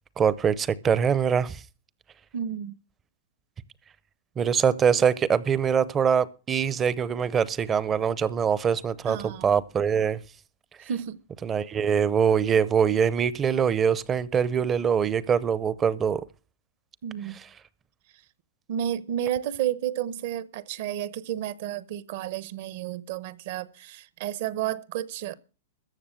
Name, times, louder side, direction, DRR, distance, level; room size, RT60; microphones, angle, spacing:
voice 1, 0.2-1.6 4.4-10.2 11.4-16.2, right 7 dB, 15° right, 0.6 m, -23 dB
voice 2, 2.3-2.7 9.1-9.5 10.8-11.2 17.0-17.4 18.7-25.3, right 10 dB, 55° right, 0.9 m, -31 dB
14.0 x 7.1 x 7.6 m
hypercardioid pair, 150°, 0 cm